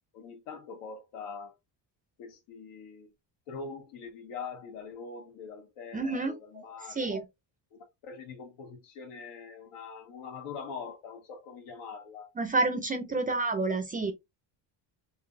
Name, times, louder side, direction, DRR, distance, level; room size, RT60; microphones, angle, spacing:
voice 1, 0.1-1.5 2.2-3.1 3.5-7.1 7.7-12.3 13.1-13.2, left 5 dB, 90° left, 1.6 m, -43 dB
voice 2, 5.9-6.6 6.9-7.2 12.4-14.1, right 3 dB, 20° right, 0.4 m, -29 dB
3.9 x 2.6 x 2.6 m
cardioid pair, 145°, 48 cm